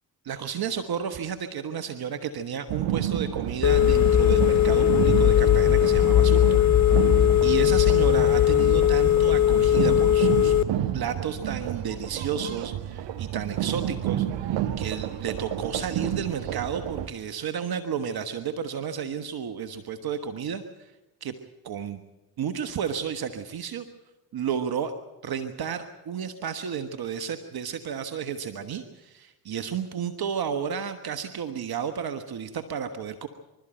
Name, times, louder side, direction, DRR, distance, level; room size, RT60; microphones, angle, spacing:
voice 1, 0.2-6.6 7.4-10.6 10.9-14.5 14.8-20.9 21.2-21.3 21.6-22.0 22.4-23.8 24.3-24.9 25.2-33.3, right 7 dB, 55° right, 9 dB, 1.4 m, -32 dB
sound 1, 2.7-17.1, right 11 dB, 75° right, 1.2 m, -30 dB
Telephone, 3.6-10.6, left 11 dB, 40° left, 0.6 m, -19 dB
25.5 x 13.0 x 8.9 m, 1.0 s
hypercardioid pair, 50°, 44 cm